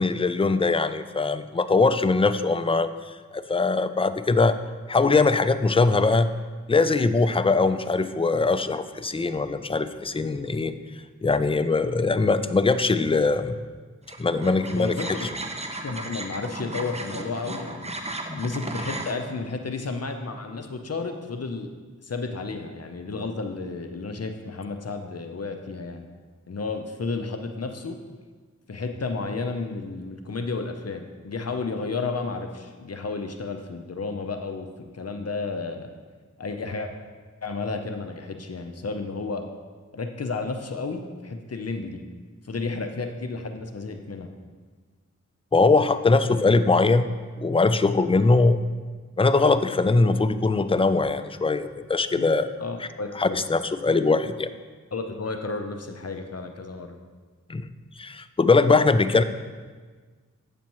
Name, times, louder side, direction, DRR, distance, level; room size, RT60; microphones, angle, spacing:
voice 1, 0.0-2.9 3.3-4.6 4.9-6.3 6.7-10.7 11.2-13.6 14.2-15.0 18.3-18.4 45.5-47.1 47.4-48.6 49.2-52.5 53.2-54.5 57.5-57.7 58.0-59.2, left 3 dB, 20° left, 12 dB, 0.4 m, -21 dB
sound 1, 14.1-19.2, right 2 dB, 20° right, 0.7 m, -35 dB
voice 2, 14.8-15.3 15.8-18.0 18.4-21.7 22.0-26.1 26.5-28.0 28.7-34.7 34.9-35.9 36.4-36.9 37.4-39.5 39.9-42.0 42.4-44.3 52.2-52.3 52.6-53.4 54.9-57.0 59.2-59.3, left 3 dB, 50° left, 6 dB, 0.7 m, -32 dB
8.5 x 6.8 x 3.0 m, 1.4 s
cardioid pair, 45°, 31 cm